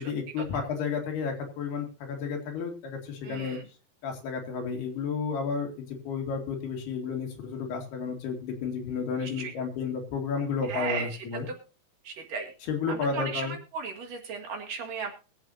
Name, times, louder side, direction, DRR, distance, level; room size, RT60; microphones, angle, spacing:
voice 1, 0.0-3.6 4.0-11.5 12.7-13.6, left 5 dB, 70° left, 2 dB, 4.1 m, -32 dB
voice 2, 3.2-3.6 9.2-9.5 10.7-11.1 12.0-12.5 12.9-15.1, right 5 dB, 60° right, 1 dB, 3.1 m, -35 dB
22.0 x 7.8 x 2.7 m, 0.33 s
omnidirectional pair, 4.8 m